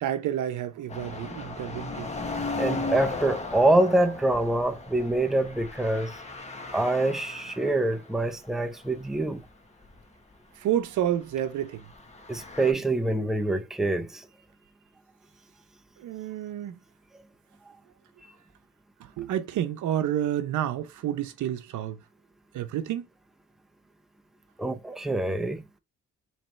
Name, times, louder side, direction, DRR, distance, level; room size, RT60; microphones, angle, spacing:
voice 1, 0.0-2.1 10.6-11.9 16.0-16.8 19.0-22.0 22.5-23.1, right 11 dB, 75° right, 0.7 m, -29 dB
sound 1, 0.9-7.9 8.2-8.3 9.0-9.5 9.8-10.0 11.9-12.7, left 3 dB, 20° left, 1.1 m, -36 dB
voice 2, 2.6-6.1 6.7-9.4 12.3-14.2 24.6-25.6, right 2 dB, ahead, 0.6 m, -25 dB
4.4 x 3.1 x 3.2 m
cardioid pair, 90°, 30 cm